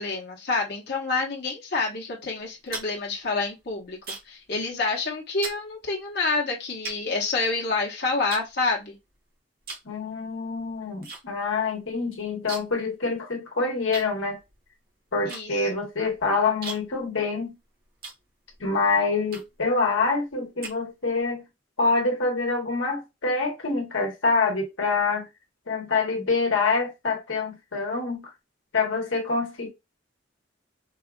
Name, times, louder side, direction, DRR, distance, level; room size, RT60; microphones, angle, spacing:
voice 1, 0.0-4.0 4.3-9.0 15.3-15.5, left 3 dB, 55° left, 1.1 m, -28 dB
sound 1, 2.4-4.5 4.7-5.0 5.4-5.6 6.3-6.4 6.8-7.8 8.3-9.2 9.6-9.9 10.2-11.2 11.5-11.6 11.8-12.9 13.1-13.2 13.9-18.7 19.3-19.7 20.2-21.2, right 4 dB, 50° right, 1.3 m, -40 dB
voice 2, 9.8-14.4 15.1-17.5 18.6-21.4 21.8-25.3 25.7-28.3 28.7-29.7, left 4 dB, 85° left, 1.2 m, -26 dB
4.0 x 2.4 x 2.4 m
head